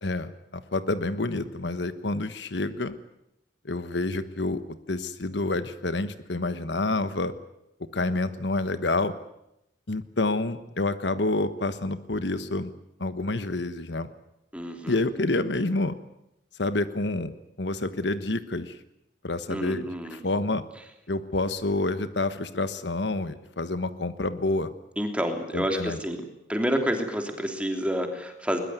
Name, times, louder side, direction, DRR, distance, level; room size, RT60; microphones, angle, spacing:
voice 1, 0.0-2.9 3.6-7.3 7.9-9.1 9.9-12.7 13.0-14.1 14.9-15.9 16.6-18.8 19.2-20.6 21.1-24.7 25.5-26.0, left 2 dB, 70° left, 12 dB, 1.3 m, -28 dB
voice 2, 14.5-15.0 19.5-20.2 25.0-26.2 26.5-28.6, equal, 5° right, 4 dB, 3.1 m, -29 dB
21.5 x 21.0 x 9.5 m, 0.84 s
head